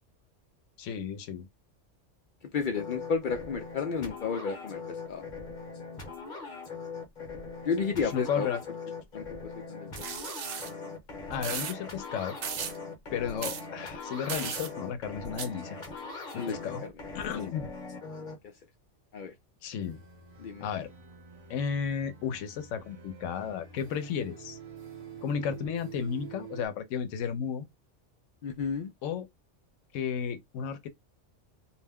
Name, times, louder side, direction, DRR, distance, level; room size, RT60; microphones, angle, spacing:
voice 1, 0.8-1.5 8.0-8.6 11.3-12.4 13.1-15.7 16.3-16.8 17.1-17.7 19.6-20.0 20.6-20.9 21.5-24.6 25.2-27.7 29.0-29.3 29.9-30.9, left 7 dB, 90° left, 0.9 m, -33 dB
voice 2, 2.5-5.2 7.6-8.5 9.1-9.3 9.7-9.9 16.4-16.9 19.1-19.3 20.4-20.7 28.4-28.9, left 5 dB, 60° left, 0.5 m, -32 dB
sound 1, 2.7-18.3, left 4 dB, 45° left, 0.9 m, -41 dB
sound 2, 9.9-10.7 11.4-11.7 12.4-12.8 13.4-13.6 14.3-14.7 15.4-15.5, right 7 dB, 75° right, 0.9 m, -35 dB
sound 3, 19.8-26.7, right 7 dB, 45° right, 1.1 m, -48 dB
2.5 x 2.1 x 3.4 m
omnidirectional pair, 1.2 m